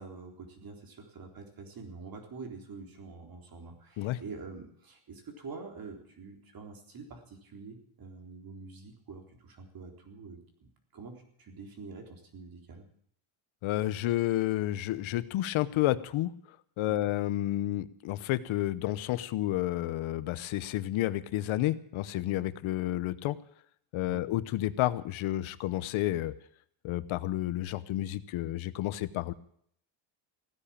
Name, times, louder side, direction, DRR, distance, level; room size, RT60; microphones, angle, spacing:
voice 1, 0.0-12.8 16.9-17.1 24.0-24.3, right 4 dB, 45° right, 3 dB, 3.9 m, -46 dB
voice 2, 13.6-16.3 16.8-23.4 23.9-26.3 26.8-29.3, left 15 dB, 75° left, 15 dB, 1.0 m, -30 dB
16.0 x 10.0 x 8.7 m, 0.67 s
cardioid pair, 110°, 49 cm